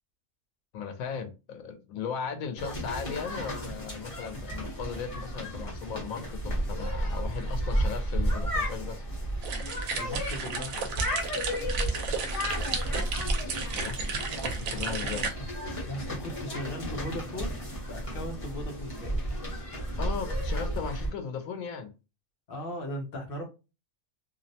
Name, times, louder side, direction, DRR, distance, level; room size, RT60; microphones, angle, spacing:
voice 1, 0.7-9.0 13.7-14.0 14.4-15.3 20.0-21.9, left 6 dB, 85° left, 1.0 m, -37 dB
sound 1, 2.6-21.1, equal, 30° left, 0.8 m, -33 dB
sound 2, 9.4-15.3, right 5 dB, 85° right, 1.0 m, -34 dB
voice 2, 9.9-10.8 15.0-15.1 15.9-19.4 22.5-23.5, equal, 55° left, 0.7 m, -38 dB
2.6 x 2.0 x 2.6 m
omnidirectional pair, 1.4 m